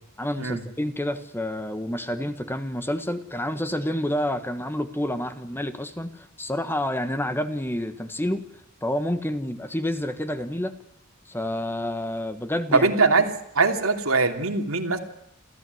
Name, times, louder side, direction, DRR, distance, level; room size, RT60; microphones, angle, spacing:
voice 1, 0.2-8.4 8.8-10.7 11.3-12.9, left 1 dB, 10° left, 10 dB, 1.4 m, -29 dB
voice 2, 12.7-15.0, right 4 dB, 85° right, 5 dB, 3.0 m, -22 dB
28.0 x 15.0 x 9.4 m, 0.74 s
head